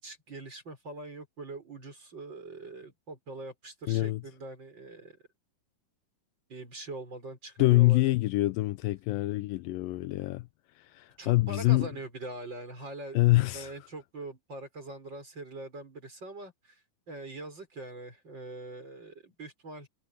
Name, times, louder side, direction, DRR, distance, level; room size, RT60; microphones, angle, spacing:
voice 1, 0.0-5.2 6.5-8.1 11.2-13.2 13.5-16.8 17.1-19.9, right 2 dB, 30° right, 7.1 m, -43 dB
voice 2, 3.9-4.2 7.6-10.5 10.8-11.9 13.1-13.7, left 19 dB, 80° left, 2.2 m, -25 dB
omnidirectional pair, 4.2 m